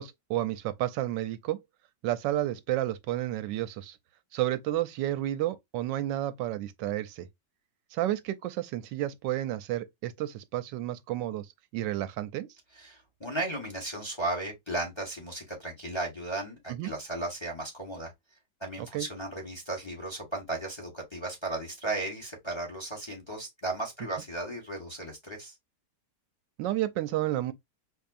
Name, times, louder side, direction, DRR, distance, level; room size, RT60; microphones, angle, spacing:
voice 1, 0.0-1.6 2.0-4.0 4.3-7.3 7.9-11.5 11.7-12.5 16.8-16.9 18.9-19.1 26.6-27.5, right 14 dB, 90° right, 1.2 m, -31 dB
voice 2, 12.7-18.1 18.6-25.5, right 2 dB, 20° left, 1.0 m, -35 dB
4.6 x 2.7 x 2.5 m
omnidirectional pair, 1.9 m